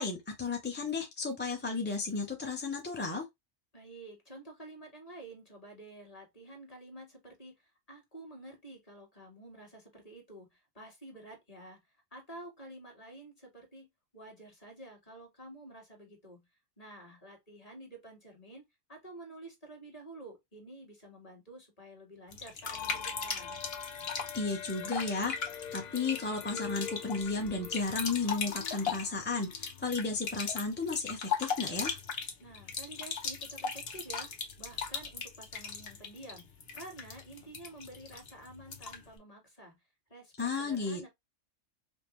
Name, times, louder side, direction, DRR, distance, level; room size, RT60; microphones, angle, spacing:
voice 1, 0.0-3.3 24.3-25.4 25.7-32.0 40.4-41.1, left 4 dB, 10° left, 0.7 m, -33 dB
voice 2, 3.7-13.9 14.1-16.5 16.8-18.6 18.9-23.6 32.4-34.3 34.6-39.8 40.1-41.1, right 2 dB, 30° left, 1.8 m, -50 dB
sound 1, 22.3-39.1, left 5 dB, 55° left, 1.1 m, -39 dB
sound 2, 22.6-30.2, left 7 dB, 80° left, 0.4 m, -45 dB
5.3 x 2.1 x 3.1 m
omnidirectional pair, 1.3 m